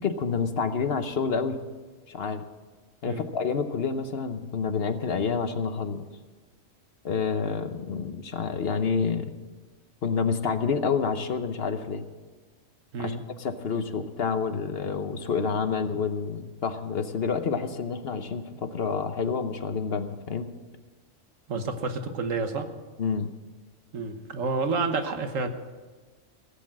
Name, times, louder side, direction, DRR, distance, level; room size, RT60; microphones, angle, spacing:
voice 1, 0.0-1.6 2.1-2.4 3.0-6.0 7.0-9.3 10.0-12.1 13.0-20.5 23.0-23.3, left 5 dB, 55° left, 9 dB, 1.0 m, -28 dB
voice 2, 21.5-22.7 23.9-25.5, right 4 dB, 85° right, 7 dB, 1.6 m, -29 dB
16.5 x 8.4 x 7.5 m, 1.3 s
omnidirectional pair, 1.3 m